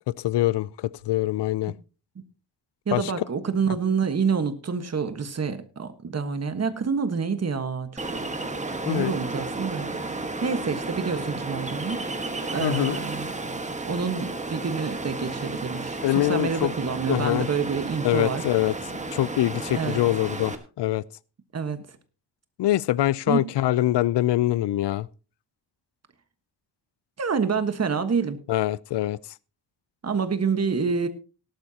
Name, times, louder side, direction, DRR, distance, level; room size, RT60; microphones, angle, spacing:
voice 1, 0.2-1.7 2.9-3.1 8.9-9.1 12.6-13.0 16.0-16.7 17.1-17.5 18.0-18.7 19.1-21.0 22.6-25.1 28.5-29.2, left 15 dB, 85° left, 0.5 m, -24 dB
voice 2, 2.9-7.9 8.9-12.0 12.5-13.3 13.8-18.4 19.7-20.0 21.5-21.8 23.3-23.4 27.2-28.4 30.0-31.1, right 5 dB, 40° right, 1.4 m, -27 dB
Ocean, 8.0-20.5, right 2 dB, 15° right, 1.5 m, -33 dB
18.0 x 12.0 x 2.8 m
wide cardioid pair, 125°, 41 cm